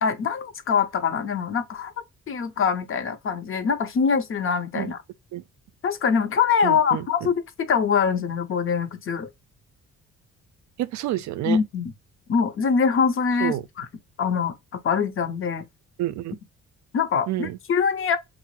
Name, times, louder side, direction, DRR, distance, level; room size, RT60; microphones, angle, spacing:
voice 1, 0.0-1.9 2.3-5.0 5.8-7.3 7.7-9.3 11.4-11.9 12.3-13.9 14.2-14.5 14.8-15.7 16.9-18.2, left 6 dB, 45° left, 0.7 m, -23 dB
voice 2, 6.6-7.0 10.8-11.6 13.4-13.6 16.0-16.4 17.3-17.6, right 14 dB, 70° right, 0.4 m, -28 dB
3.4 x 2.0 x 3.0 m
cardioid pair, 90°, 30 cm